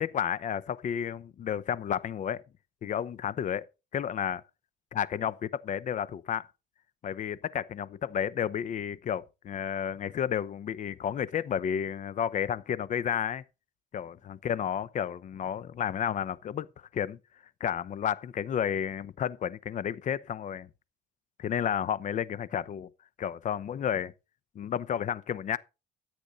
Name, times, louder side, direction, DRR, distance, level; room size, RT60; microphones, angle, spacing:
voice 1, 0.0-2.4 2.8-3.6 3.9-4.4 4.9-6.5 7.0-13.4 13.9-16.7 16.9-17.2 17.6-20.7 21.4-22.9 23.2-24.1 24.5-25.6, left 9 dB, 45° left, 0.8 m, -31 dB
13.5 x 8.2 x 4.1 m
cardioid pair, 110°, 17 cm